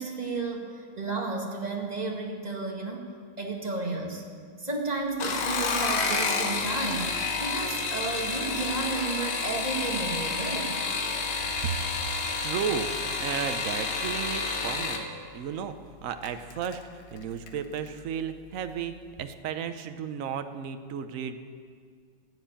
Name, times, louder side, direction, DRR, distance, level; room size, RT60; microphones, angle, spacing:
voice 1, 0.0-3.0 3.4-4.2 4.6-10.8, right 3 dB, 20° right, 0 dB, 1.8 m, -32 dB
sound 1, 5.1-15.0 16.2-16.7 17.2-17.6 17.9-18.0, left 4 dB, 75° left, 1.9 m, -30 dB
voice 2, 11.6-15.1 15.3-21.4, right 7 dB, 60° right, 9 dB, 1.0 m, -34 dB
14.5 x 8.0 x 8.7 m, 2.1 s
omnidirectional pair, 2.0 m